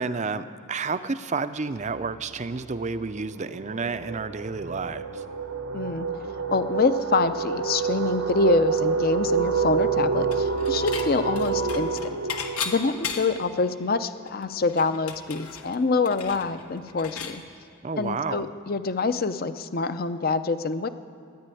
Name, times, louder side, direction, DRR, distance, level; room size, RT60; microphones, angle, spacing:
voice 1, 0.0-5.2 17.8-18.5, right 4 dB, 30° right, 11 dB, 0.5 m, -30 dB
sound 1, 2.5-14.0, right 5 dB, 85° right, 1.1 m, -28 dB
voice 2, 5.7-6.1 6.5-12.1 12.6-17.4 18.0-20.9, left 4 dB, 45° left, 11 dB, 0.6 m, -26 dB
Dishes pots and pans / Chink clink, 10.3-11.1 11.4-13.5 13.9-14.0 14.3-17.4, left 6 dB, 85° left, 1.3 m, -35 dB
13.0 x 10.5 x 9.2 m, 2.7 s
head